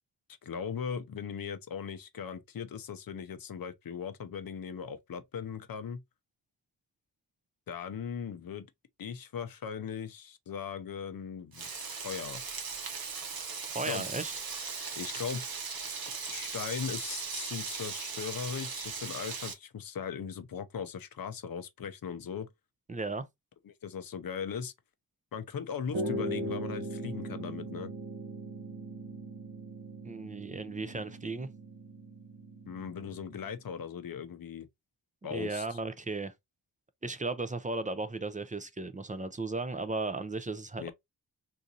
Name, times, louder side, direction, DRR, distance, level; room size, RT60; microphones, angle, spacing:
voice 1, 0.4-6.0 7.7-8.7 9.0-11.7 12.0-12.4 13.9-14.0 15.0-15.4 16.3-22.5 23.6-24.7 25.3-27.9 32.7-34.7 35.2-35.8 40.8-40.9, left 7 dB, 55° left, 0.6 m, -38 dB
Frying (food), 11.5-19.5, right 5 dB, 55° right, 1.1 m, -38 dB
voice 2, 13.7-14.3 22.9-23.3 30.0-31.5 35.3-36.3 37.0-40.9, right 3 dB, 20° right, 0.4 m, -35 dB
sound 1, 25.9-33.6, right 1 dB, 80° right, 1.2 m, -39 dB
3.8 x 2.5 x 2.7 m
wide cardioid pair, 155°, 42 cm